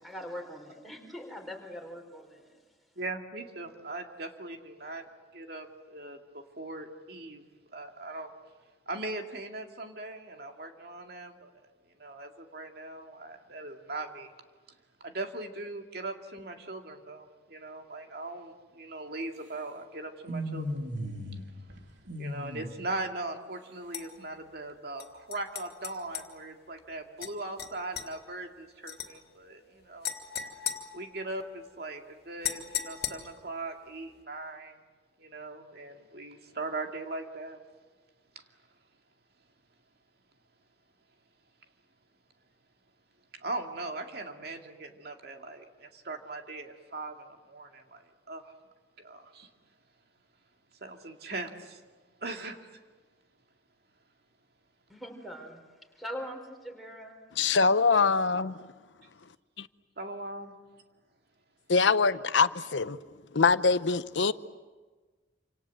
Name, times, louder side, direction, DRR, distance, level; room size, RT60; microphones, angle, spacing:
voice 1, 0.0-2.6 54.9-55.6 55.9-57.2, equal, ahead, 4.3 m, -42 dB
voice 2, 3.0-5.1 5.3-7.4 7.7-8.3 8.9-11.5 12.0-14.3 15.0-20.8 22.2-30.1 30.9-34.8 35.2-37.6 43.4-48.5 49.0-49.5 50.8-51.8 52.2-52.8 60.0-60.5, right 2 dB, 55° right, 2.3 m, -40 dB
sound 1, 20.3-21.4 21.7-22.7, equal, 80° right, 3.0 m, -36 dB
sound 2, 23.9-24.1 25.0-26.3 27.2-27.3 27.6-28.1 28.9-29.1 30.0-31.5 32.4-33.5, left 9 dB, 55° left, 2.6 m, -37 dB
voice 3, 57.4-58.6 59.6-59.7 61.7-63.0 63.3-64.3, left 4 dB, 75° left, 0.8 m, -24 dB
28.0 x 26.5 x 7.7 m
head